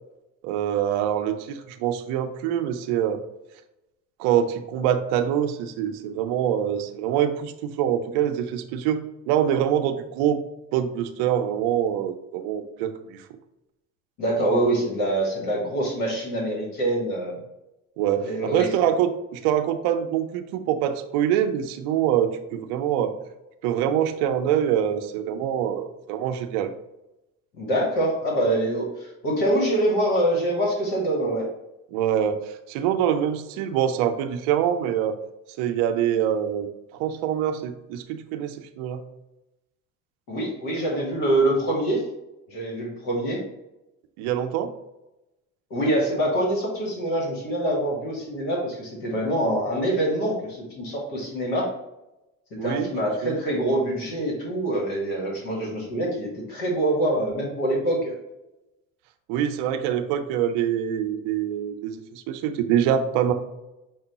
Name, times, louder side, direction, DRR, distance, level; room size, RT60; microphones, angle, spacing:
voice 1, 0.4-3.2 4.2-10.4 10.7-13.2 18.0-23.2 23.6-26.7 31.9-35.2 35.6-36.7 36.9-39.0 44.2-44.7 52.6-52.9 53.2-53.4 59.3-63.3, right 10 dB, 75° right, 8 dB, 0.6 m, -25 dB
voice 2, 14.2-17.4 18.2-18.9 27.5-31.5 40.3-42.0 42.5-43.4 45.7-51.7 52.6-58.1, right 1 dB, 75° left, -2 dB, 1.4 m, -25 dB
6.0 x 2.2 x 4.0 m, 0.94 s
hypercardioid pair, 60°, 39 cm